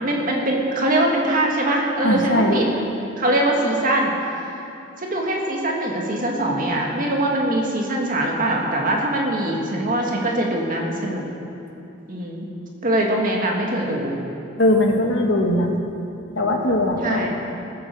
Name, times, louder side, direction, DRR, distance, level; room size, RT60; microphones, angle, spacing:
voice 1, 0.0-2.8 3.2-4.1 5.0-11.2 12.1-12.5 12.8-14.1 17.0-17.3, right 1 dB, 45° right, -1 dB, 2.0 m, -22 dB
voice 2, 2.0-2.6 14.6-15.7 16.3-17.3, left 1 dB, 65° left, 1 dB, 1.7 m, -19 dB
18.0 x 7.8 x 7.0 m, 2.7 s
head